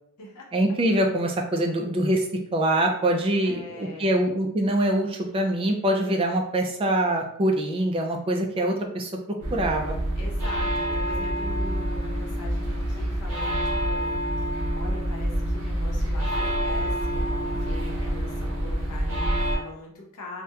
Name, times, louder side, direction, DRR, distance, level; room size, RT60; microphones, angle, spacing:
voice 1, 0.5-2.3 2.5-10.0, right 1 dB, 25° right, 2 dB, 0.3 m, -24 dB
voice 2, 3.4-4.3 10.2-20.4, left 2 dB, 90° left, -2 dB, 0.6 m, -42 dB
sound 1, 9.4-19.6, equal, 60° right, 0.6 m, -27 dB
2.8 x 2.1 x 2.3 m, 0.71 s
head